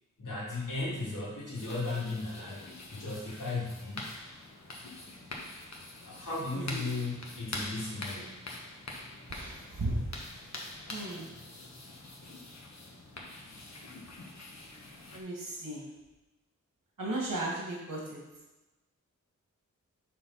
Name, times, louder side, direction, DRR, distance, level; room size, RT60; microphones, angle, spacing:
voice 1, 0.2-2.6 2.9-4.1 6.0-8.4, left 3 dB, 75° left, -7 dB, 2.7 m, -36 dB
sound 1, 1.5-15.2, left 2 dB, 55° left, 1.2 m, -45 dB
voice 2, 6.5-6.9 9.3-10.1 10.9-11.3 15.1-15.9 17.0-18.2, right 2 dB, 85° right, -4 dB, 2.3 m, -35 dB
6.9 x 4.0 x 5.7 m, 1.0 s
wide cardioid pair, 90°, 32 cm